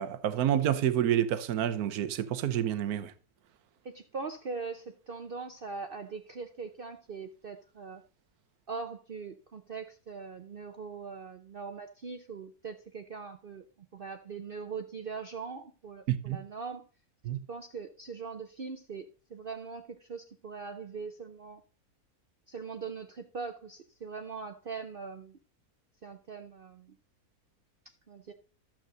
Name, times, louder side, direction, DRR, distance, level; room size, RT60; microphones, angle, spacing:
voice 1, 0.0-3.1 16.1-16.4 17.2-17.4, right 10 dB, 80° right, 1.3 m, -28 dB
voice 2, 3.8-8.0 8.7-16.8 17.5-21.6 22.5-25.4 26.0-26.9 27.8-28.3, right 5 dB, 45° right, 0.8 m, -41 dB
12.0 x 7.5 x 3.8 m
omnidirectional pair, 1.6 m